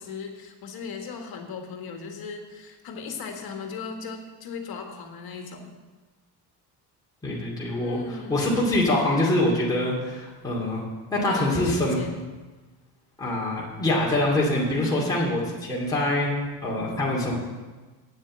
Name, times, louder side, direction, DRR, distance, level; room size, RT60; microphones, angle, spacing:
voice 1, 0.0-5.7 7.8-8.4 11.3-12.2 14.5-15.3, left 5 dB, 60° left, 3 dB, 1.8 m, -37 dB
voice 2, 7.2-8.0 8.3-10.8 11.1-12.0 13.2-16.3 16.6-17.3, left 1 dB, 10° left, -6 dB, 2.4 m, -24 dB
9.0 x 7.4 x 7.6 m, 1.3 s
cardioid pair, 120°, 41 cm